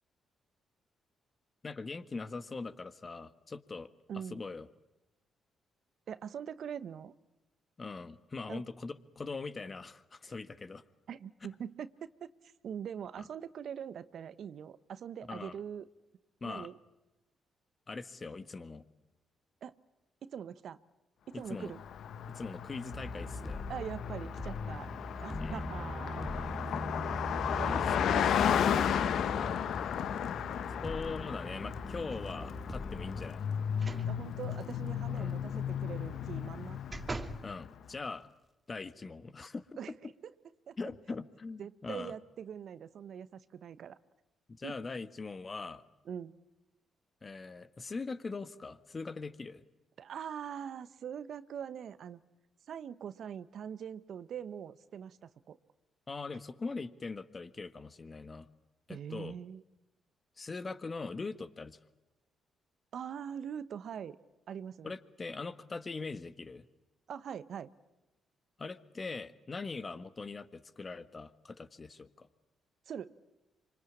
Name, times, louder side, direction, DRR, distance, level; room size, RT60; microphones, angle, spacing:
voice 1, 1.6-3.9 4.3-4.7 7.8-10.8 15.3-15.6 16.4-16.7 17.9-18.8 21.5-21.7 22.3-23.6 25.4-25.7 30.8-33.4 35.1-35.4 37.4-38.3 38.7-39.6 40.8-42.1 44.5-45.8 47.2-49.6 56.1-58.5 58.9-59.3 60.4-61.8 64.8-66.6 68.6-72.3, left 4 dB, 40° left, 12 dB, 1.6 m, -41 dB
voice 2, 4.1-4.4 6.1-7.1 8.5-8.6 10.2-10.3 11.1-11.9 12.2-12.3 12.6-15.8 16.4-16.8 19.6-19.8 20.2-20.8 21.3-21.8 23.7-24.9 25.2-26.5 27.6-29.6 34.0-36.8 39.8-40.1 40.7-40.8 41.6-44.0 44.6-44.8 46.1-46.3 50.0-52.2 52.7-55.6 58.9-59.6 62.9-64.2 64.5-64.9 67.1-67.7 72.9-73.1, right 8 dB, 65° right, 14 dB, 1.0 m, -43 dB
Car passing by, 21.6-37.7, left 9 dB, 70° left, 0.9 m, -34 dB
sound 1, 22.9-33.3, left 1 dB, 20° left, 2.6 m, -41 dB
sound 2, 32.1-32.6 33.7-34.1 34.5-34.6 36.2-37.5 38.1-38.2, right 3 dB, 30° right, 2.1 m, -43 dB
25.5 x 25.0 x 8.6 m, 1.0 s
hypercardioid pair, 45°, 0 cm